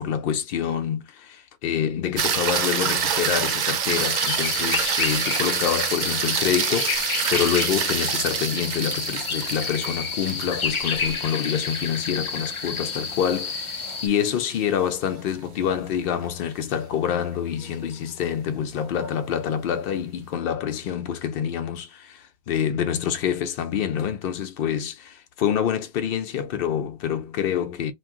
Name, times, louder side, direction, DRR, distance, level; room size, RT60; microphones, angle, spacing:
voice 1, 0.0-27.9, left 9 dB, 65° left, 0.7 m, -27 dB
sound 1, 2.2-14.6 19.0-19.1, right 7 dB, 55° right, 0.6 m, -27 dB
sound 2, 3.9-14.1, left 5 dB, 45° left, 0.4 m, -30 dB
2.6 x 2.3 x 3.6 m
omnidirectional pair, 1.1 m